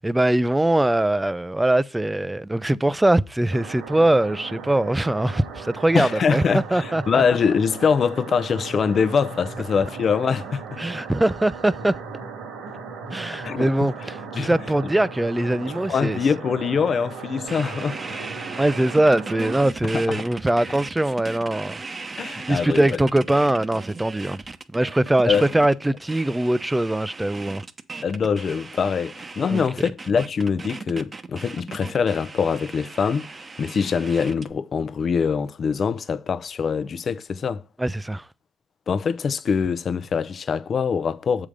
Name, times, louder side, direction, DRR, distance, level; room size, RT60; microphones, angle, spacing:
voice 1, 0.0-7.2 10.8-12.0 13.1-16.2 18.6-21.7 22.5-24.4 24.7-27.6 29.5-29.6 37.8-38.3, right 1 dB, 10° right, 0.5 m, -22 dB
sound 1, 3.5-19.6, right 5 dB, 85° right, 2.0 m, -37 dB
voice 2, 5.9-10.6 13.4-13.7 14.3-14.5 15.9-18.0 19.9-20.2 22.2-23.0 25.3-25.4 28.0-37.6 38.9-41.5, left 6 dB, 50° left, 0.7 m, -23 dB
sound 2, 17.5-34.5, right 3 dB, 30° right, 0.9 m, -37 dB
7.4 x 4.9 x 5.1 m
supercardioid pair, 70°, 0 cm